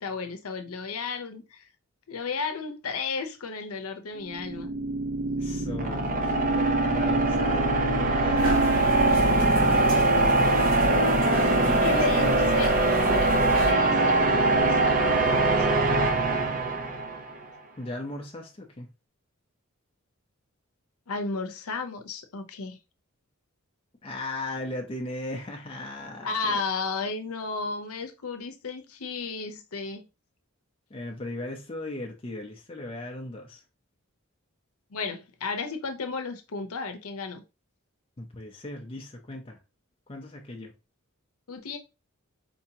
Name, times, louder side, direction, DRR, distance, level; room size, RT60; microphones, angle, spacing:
voice 1, 0.0-1.7 2.1-4.7 11.7-12.7 13.0-15.8 21.1-22.8 26.2-30.1 34.9-37.4 41.5-41.8, left 4 dB, 80° left, 0.7 m, -33 dB
sound 1, 4.2-17.3, right 2 dB, 40° right, 0.6 m, -23 dB
voice 2, 5.4-8.6 11.6-12.2 17.8-18.9 24.0-26.6 30.9-33.6 38.2-39.6 40.1-40.7, left 2 dB, 25° left, 0.6 m, -37 dB
sound 2, 8.4-13.7, equal, 70° right, 2.2 m, -34 dB
4.5 x 2.8 x 2.8 m
head